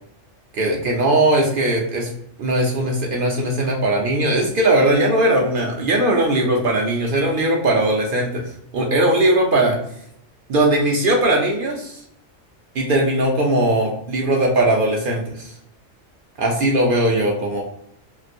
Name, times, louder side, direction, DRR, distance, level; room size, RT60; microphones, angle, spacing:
voice 1, 0.5-2.1 2.4-8.4 8.7-9.8 10.5-12.0 12.7-15.5 16.4-17.6, right 1 dB, 60° right, 0 dB, 0.6 m, -19 dB
3.0 x 2.6 x 2.6 m, 0.73 s
omnidirectional pair, 1.2 m